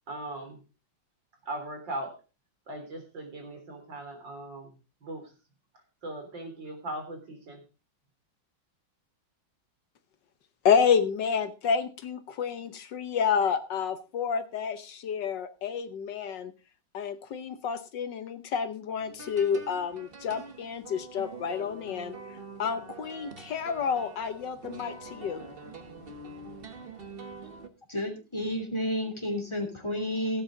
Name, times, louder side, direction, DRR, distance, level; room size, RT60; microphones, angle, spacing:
voice 1, 0.1-0.6 1.5-2.1 2.7-4.7 5.0-5.3 6.0-7.6, right 1 dB, 65° right, 4 dB, 4.2 m, -39 dB
voice 2, 10.6-16.5 16.9-22.2 22.6-25.4, left 6 dB, 70° left, 11 dB, 1.5 m, -29 dB
sound 1, 19.0-27.7, right 3 dB, 35° right, 1.2 m, -45 dB
voice 3, 27.9-30.4, equal, 15° left, 3 dB, 2.9 m, -31 dB
17.0 x 9.1 x 3.8 m, 0.31 s
omnidirectional pair, 2.1 m